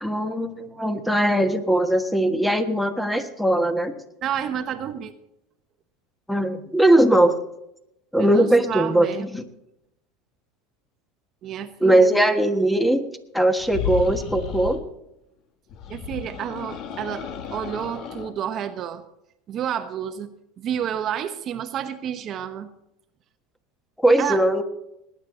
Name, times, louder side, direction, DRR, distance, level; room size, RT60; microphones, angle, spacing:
voice 1, 0.0-3.9 6.3-7.4 8.1-9.4 11.8-13.1 13.3-14.8 24.0-24.6, right 1 dB, 5° left, 8 dB, 1.5 m, -20 dB
voice 2, 4.2-5.1 8.2-9.3 11.4-12.2 15.9-19.0 19.5-22.7 24.2-24.4, right 9 dB, 45° right, 9 dB, 0.9 m, -30 dB
sound 1, 13.6-14.8 15.7-18.3, left 8 dB, 50° left, 1.6 m, -33 dB
20.5 x 9.8 x 3.9 m, 0.83 s
supercardioid pair, 105°, 0 cm